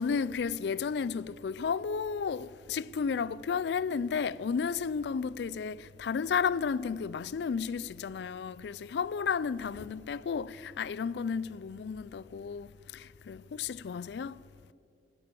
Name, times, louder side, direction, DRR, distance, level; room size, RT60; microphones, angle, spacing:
voice 1, 0.0-14.4, left 6 dB, 70° left, 0.3 m, -33 dB
13.0 x 10.5 x 7.6 m
head